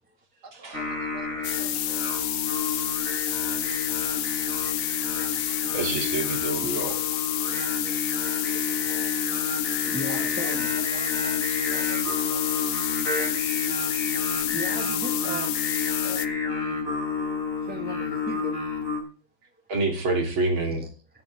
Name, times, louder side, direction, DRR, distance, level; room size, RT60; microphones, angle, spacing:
voice 1, 0.4-2.1 10.1-13.0, right 3 dB, 50° right, 3.4 m, -47 dB
Singing, 0.7-19.0, left 4 dB, 40° left, 4.2 m, -30 dB
voice 2, 1.3-1.8 2.5-3.1 3.5-5.8 6.8-10.8 14.5-15.7 16.0-16.8 17.6-18.6 20.8-20.9, equal, 5° right, 1.4 m, -41 dB
sound 1, 1.4-16.3, left 12 dB, 90° left, 1.7 m, -29 dB
voice 3, 5.7-7.0 19.7-20.8, right 2 dB, 70° right, 3.8 m, -27 dB
15.0 x 12.0 x 3.5 m
omnidirectional pair, 2.3 m